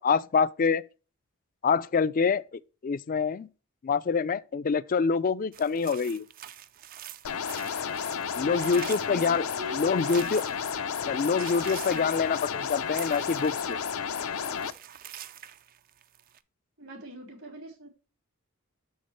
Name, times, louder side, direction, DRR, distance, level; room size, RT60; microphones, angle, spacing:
voice 1, 0.0-0.8 1.6-3.5 3.8-6.2 8.3-9.4 9.7-10.4 11.1-13.8, left 5 dB, 40° left, 0.3 m, -26 dB
sound 1, 5.5-10.8 11.1-14.1 14.4-16.4, right 11 dB, 40° right, 0.4 m, -46 dB
sound 2, 7.2-14.7, left 7 dB, 85° left, 0.6 m, -32 dB
voice 2, 8.5-10.2 16.8-17.9, equal, 80° right, 3.8 m, -42 dB
6.6 x 6.5 x 3.0 m
head